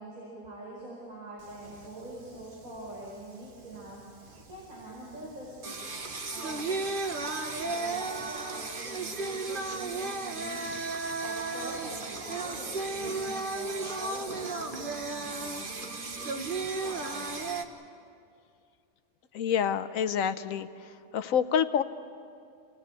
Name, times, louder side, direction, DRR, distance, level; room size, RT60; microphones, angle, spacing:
voice 1, 0.0-5.9 6.3-7.3 7.6-16.5 16.8-17.4, right 1 dB, 70° right, -4 dB, 5.0 m, -44 dB
Singing, 1.4-17.6, right 3 dB, 40° right, 1.3 m, -35 dB
voice 2, 19.3-20.7 21.1-21.8, left 8 dB, 70° left, 11 dB, 1.2 m, -27 dB
27.5 x 18.0 x 8.4 m, 2.4 s
omnidirectional pair, 1.5 m